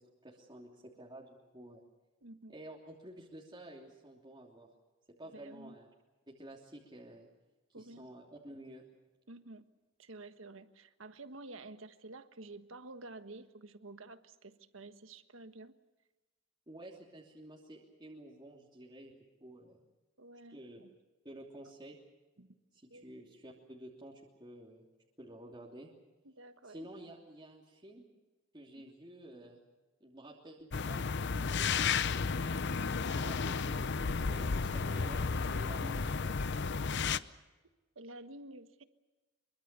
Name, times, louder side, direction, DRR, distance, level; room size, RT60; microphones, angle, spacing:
voice 1, 0.0-1.8 2.5-4.7 5.1-5.9 6.3-7.3 7.7-8.8 16.7-19.8 20.5-20.8 21.2-22.0 22.7-24.9 25.2-25.9 26.6-28.1 28.5-29.6 30.0-32.3 33.1-36.4, right 1 dB, 25° right, -3 dB, 3.1 m, -51 dB
voice 2, 2.2-2.5 5.3-5.8 7.7-8.1 9.3-9.7 10.0-15.7 20.2-20.9 22.4-22.5 22.9-23.1 26.2-26.9 28.7-28.9 34.0-34.2 37.9-38.8, right 2 dB, 85° right, 10 dB, 1.4 m, -50 dB
sound 1, 30.7-37.2, left 5 dB, 60° left, 0.7 m, -33 dB
25.0 x 23.5 x 6.9 m, 1.2 s
head